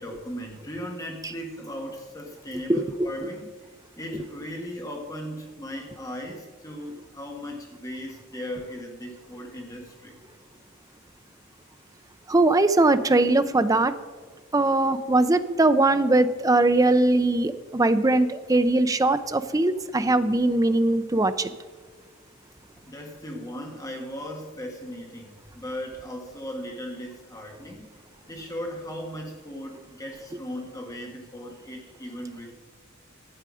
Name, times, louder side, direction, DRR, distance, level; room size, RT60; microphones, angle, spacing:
voice 1, 0.0-3.5 4.0-10.1 22.8-27.9 28.3-32.5, equal, 15° left, 1 dB, 1.4 m, -37 dB
voice 2, 12.3-13.9 14.5-21.5, right 2 dB, 15° right, 11 dB, 0.5 m, -21 dB
12.0 x 8.0 x 4.9 m, 1.6 s
head